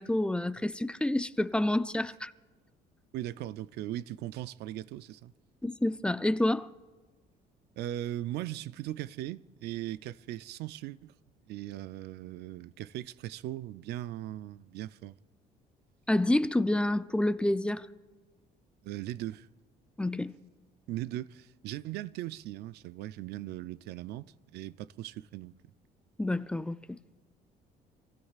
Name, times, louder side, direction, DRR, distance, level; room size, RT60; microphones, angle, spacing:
voice 1, 0.0-2.3 5.6-6.7 16.1-17.9 20.0-20.4 26.2-27.0, left 1 dB, 5° left, 0.4 m, -28 dB
voice 2, 3.1-5.3 7.8-11.1 11.5-15.2 18.8-19.5 20.9-25.5, right 14 dB, 75° right, 0.5 m, -39 dB
26.0 x 16.0 x 2.4 m
cardioid pair, 110°, 17 cm